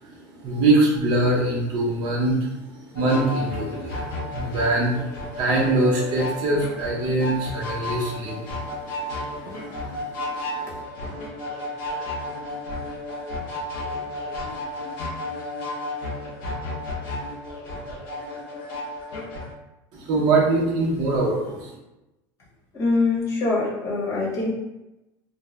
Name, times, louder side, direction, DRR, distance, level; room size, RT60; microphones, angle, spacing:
voice 1, 0.0-8.7 9.0-9.1 9.4-10.8 19.9-21.7, right 2 dB, 50° right, -3 dB, 0.6 m, -24 dB
sound 1, 3.0-19.5, left 1 dB, 85° left, 0.7 m, -33 dB
voice 2, 22.7-24.5, left 3 dB, 30° left, -6 dB, 0.9 m, -23 dB
2.5 x 2.0 x 3.1 m, 0.95 s
cardioid pair, 155°, 10 cm